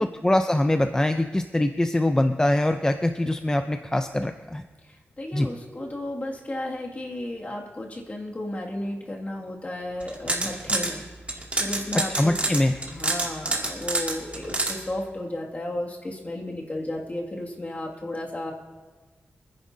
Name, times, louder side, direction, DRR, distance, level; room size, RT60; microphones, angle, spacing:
voice 1, 0.0-4.6 5.3-5.5 12.1-12.7, left 1 dB, 15° left, 7 dB, 0.5 m, -23 dB
voice 2, 4.9-11.0 11.6-12.3 12.9-18.5, left 1 dB, 35° left, -2 dB, 2.2 m, -33 dB
sound 1, 10.0-10.9 11.3-14.7, right 2 dB, 30° right, 2.4 m, -26 dB
25.5 x 10.5 x 2.7 m, 1.3 s
wide cardioid pair, 85°, 4 cm